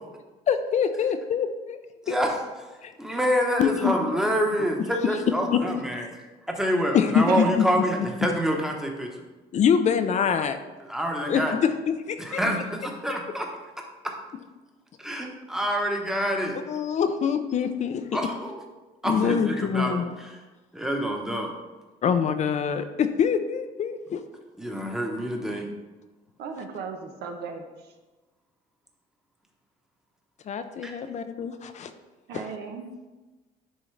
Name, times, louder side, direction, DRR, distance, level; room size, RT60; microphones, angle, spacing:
voice 1, 0.5-1.8 2.1-2.2 2.8-2.9 3.6-3.9 5.5-5.6 6.9-7.4 9.5-10.6 11.3-11.7 12.1-12.4 16.7-18.0 19.0-20.1 22.0-24.2 30.5-31.9 32.3-32.4, left 7 dB, 45° left, 9 dB, 0.5 m, -24 dB
voice 2, 2.1-2.4 3.0-6.1 6.5-9.1 10.9-11.5 12.2-13.5 15.0-16.6 18.1-18.6 19.0-20.3 20.7-21.5 24.6-25.7 30.8-31.1, equal, 5° right, 1 dB, 1.0 m, -27 dB
voice 3, 7.1-7.5 26.4-27.6 32.3-32.9, right 5 dB, 75° right, 5 dB, 0.9 m, -35 dB
10.0 x 3.7 x 3.3 m, 1.2 s
cardioid pair, 110°, 17 cm